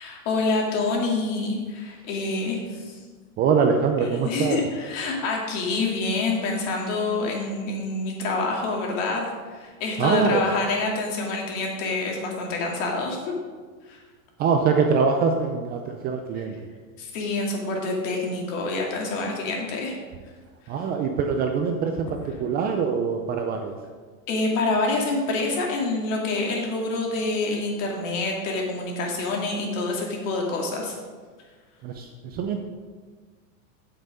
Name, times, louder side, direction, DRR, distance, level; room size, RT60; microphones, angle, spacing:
voice 1, 0.0-3.0 4.2-9.2 9.5-13.3 13.9-14.0 17.0-20.0 24.3-30.9, left 3 dB, 55° left, 0 dB, 2.6 m, -27 dB
voice 2, 3.4-4.6 10.0-10.5 14.4-16.7 20.7-23.8 31.8-32.6, right 5 dB, 20° right, 4 dB, 0.4 m, -24 dB
8.0 x 7.8 x 5.0 m, 1.5 s
supercardioid pair, 145°, 44 cm